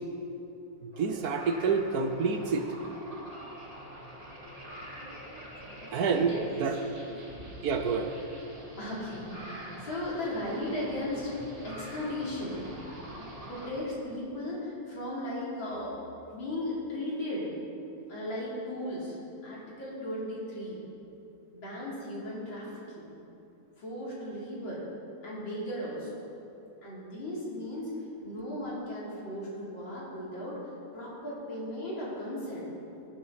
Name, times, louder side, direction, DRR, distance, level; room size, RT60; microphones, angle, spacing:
voice 1, 0.8-2.6 5.9-6.3 6.6-6.7 7.6-8.1, right 5 dB, 60° right, 6 dB, 1.2 m, -28 dB
sound 1, 0.9-13.7, equal, 20° right, 2.6 m, -45 dB
voice 2, 6.7-7.6 8.8-12.6 13.5-16.0 16.3-17.5 18.1-19.2 19.4-20.8 21.5-23.1 23.8-24.8 25.2-26.2 26.8-27.9 28.2-30.6 30.9-32.7, left 1 dB, 85° left, -7 dB, 4.2 m, -36 dB
18.5 x 10.5 x 4.1 m, 2.9 s
omnidirectional pair, 2.1 m